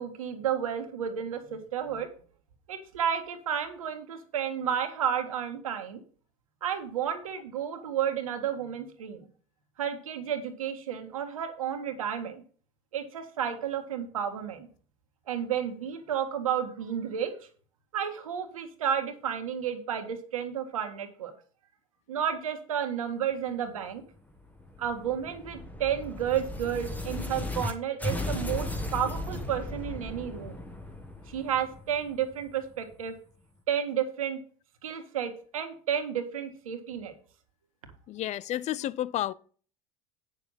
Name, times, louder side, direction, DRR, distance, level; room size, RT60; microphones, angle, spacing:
voice 1, 0.0-2.1 2.7-6.0 6.6-9.3 9.8-12.4 12.9-14.7 15.3-17.5 17.9-21.3 22.1-24.0 24.8-30.6 31.3-33.1 33.7-34.4 34.8-37.1, right 8 dB, 85° right, 1.8 m, -32 dB
sound 1, 24.3-27.7 28.0-32.7, left 2 dB, 10° left, 1.9 m, -36 dB
voice 2, 38.1-39.3, left 13 dB, 40° left, 0.5 m, -31 dB
9.0 x 6.8 x 5.6 m
hypercardioid pair, 85°, 17 cm